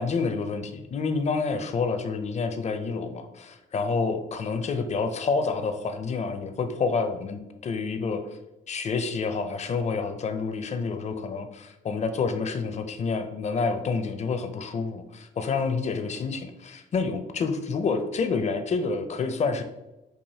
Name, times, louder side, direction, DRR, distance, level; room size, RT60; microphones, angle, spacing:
voice 1, 0.0-8.2 8.7-19.6, left 4 dB, 35° left, 8 dB, 0.5 m, -28 dB
4.7 x 2.5 x 2.8 m, 1.0 s
cardioid pair, 90°, 20 cm